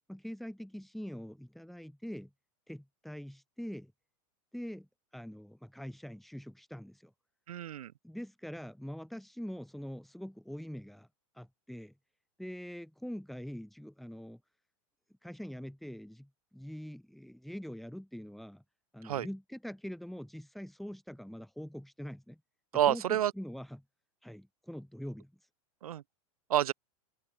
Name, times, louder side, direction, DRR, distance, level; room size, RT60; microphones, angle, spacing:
voice 1, 0.1-2.3 2.7-3.9 4.5-4.9 5.1-7.1 8.0-11.1 11.4-11.9 12.4-14.4 15.2-18.6 18.9-22.4 22.9-23.8 24.2-25.3, equal, ahead, 3.1 m, -44 dB
voice 2, 7.5-7.9 19.0-19.3 22.7-23.3 25.8-26.0 26.5-26.7, right 11 dB, 85° right, 4.4 m, -29 dB
open air
supercardioid pair, 135°, 18 cm